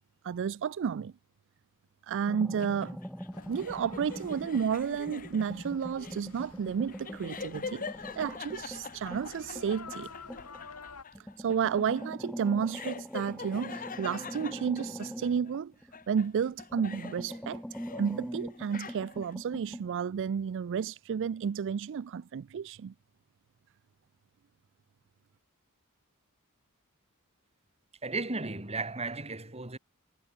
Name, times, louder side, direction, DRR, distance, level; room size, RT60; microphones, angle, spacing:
voice 1, 0.2-1.1 2.0-3.0 3.5-7.9 8.2-10.1 11.4-15.7 16.1-17.6 18.0-22.9, right 7 dB, 55° right, 0.4 m, -32 dB
sound 1, 2.3-4.7 5.1-10.7 11.1-16.2 16.5-19.9, equal, ahead, 2.4 m, -43 dB
sound 2, 2.6-15.6 15.9-18.2 18.5-19.3, left 4 dB, 40° left, 2.2 m, -44 dB
sound 3, 3.3-11.0, left 4 dB, 75° left, 2.6 m, -51 dB
voice 2, 28.0-29.8, right 3 dB, 30° right, 3.5 m, -35 dB
head